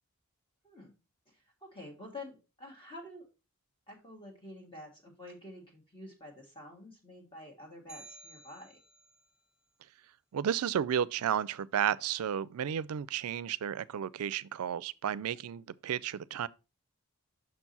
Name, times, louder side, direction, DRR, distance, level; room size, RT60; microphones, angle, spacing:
voice 1, 1.3-3.3 3.9-8.8, left 1 dB, 25° left, 1.5 m, -48 dB
sound 1, 7.9-9.3, right 2 dB, 5° right, 1.3 m, -53 dB
voice 2, 10.3-16.5, right 9 dB, 75° right, 0.4 m, -32 dB
6.3 x 4.5 x 4.1 m
head